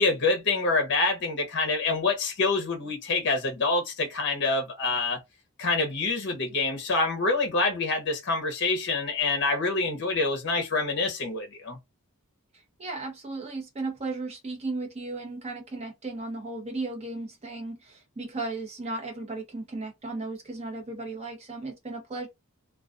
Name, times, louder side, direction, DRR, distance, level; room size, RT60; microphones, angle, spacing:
voice 1, 0.0-5.2 5.6-11.8, left 3 dB, 50° left, 0.7 m, -26 dB
voice 2, 12.8-22.3, right 3 dB, 30° right, 0.7 m, -35 dB
2.3 x 2.3 x 2.4 m
head